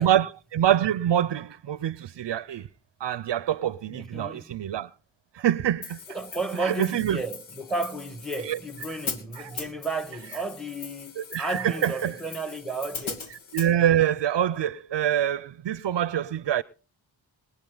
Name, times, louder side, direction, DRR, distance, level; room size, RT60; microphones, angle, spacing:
voice 1, 0.0-2.7 3.0-4.9 5.3-6.0 6.6-7.2 8.4-8.6 9.4-9.6 11.2-12.1 13.5-16.6, right 11 dB, 65° right, 0.6 m, -25 dB
voice 2, 3.9-4.5 6.1-13.4, right 2 dB, ahead, 1.7 m, -33 dB
Hi-hat, 5.8-13.7, left 5 dB, 85° left, 2.0 m, -40 dB
22.5 x 9.4 x 3.9 m
cardioid pair, 55°, 46 cm